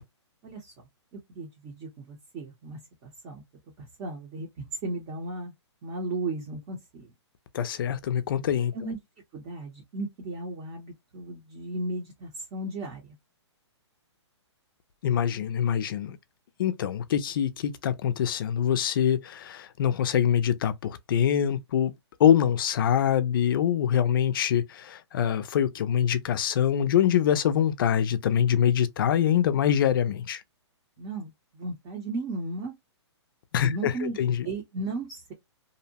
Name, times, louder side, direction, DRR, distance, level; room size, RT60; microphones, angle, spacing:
voice 1, 1.3-3.4 4.0-5.5 5.8-7.1 8.7-9.0 9.3-13.0 31.0-32.7 33.6-35.3, right 2 dB, 25° right, 0.7 m, -35 dB
voice 2, 7.5-8.7 15.0-16.2 16.6-21.9 22.2-30.4 33.5-34.5, left 9 dB, 50° left, 0.4 m, -24 dB
2.6 x 2.0 x 2.8 m
hypercardioid pair, 155°, 15 cm